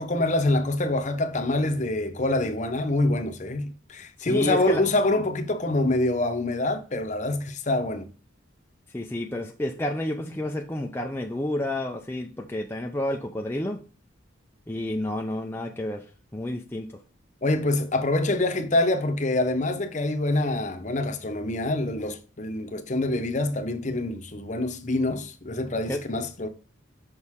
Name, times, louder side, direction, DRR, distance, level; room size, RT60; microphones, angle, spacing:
voice 1, 0.0-8.1 17.4-26.5, left 2 dB, 35° left, 0.8 m, -25 dB
voice 2, 4.2-4.8 8.9-13.8 14.7-16.0 16.3-17.0 25.9-26.0, left 1 dB, 10° left, 0.5 m, -30 dB
6.4 x 5.4 x 3.6 m
head